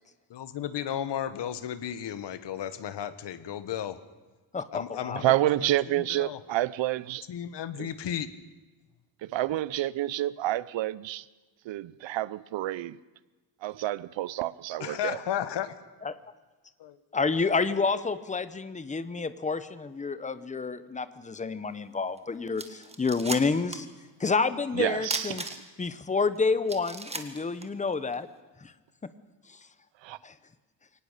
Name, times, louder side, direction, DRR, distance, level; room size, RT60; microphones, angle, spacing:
voice 1, 0.3-4.0 4.7-5.3 5.6-6.4 7.3-8.3 14.8-15.8 16.8-17.0, left 10 dB, 70° left, 1.4 m, -34 dB
voice 2, 4.5-5.2 16.0-16.1 17.1-23.9 24.2-25.4 25.8-28.3 28.6-28.7 30.2-30.3, left 4 dB, 15° left, 0.8 m, -29 dB
voice 3, 5.2-7.3 7.8-7.9 9.2-11.3 11.6-13.0 13.6-15.2 24.7-25.4 30.0-30.2, right 15 dB, 85° right, 0.7 m, -29 dB
sound 1, 22.2-22.3 22.6-23.9 24.2-24.3 25.0-25.9 26.3-26.4 26.7-28.2, right 3 dB, 15° right, 1.5 m, -36 dB
23.5 x 18.5 x 6.6 m
wide cardioid pair, 165°, 44 cm